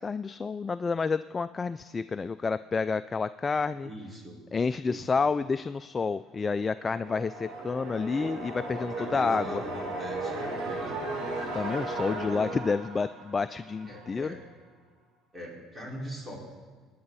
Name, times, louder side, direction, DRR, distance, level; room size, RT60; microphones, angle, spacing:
voice 1, 0.0-3.9 4.5-9.6 11.5-14.4, left 4 dB, 25° left, 12 dB, 0.3 m, -29 dB
voice 2, 3.8-4.4 4.8-5.1 8.8-11.3 13.8-14.4 15.3-16.4, equal, 20° right, -3 dB, 4.8 m, -42 dB
sound 1, 6.4-14.2, right 2 dB, 75° right, 4.5 m, -36 dB
24.5 x 9.6 x 4.1 m, 1.5 s
cardioid pair, 100°, 0 cm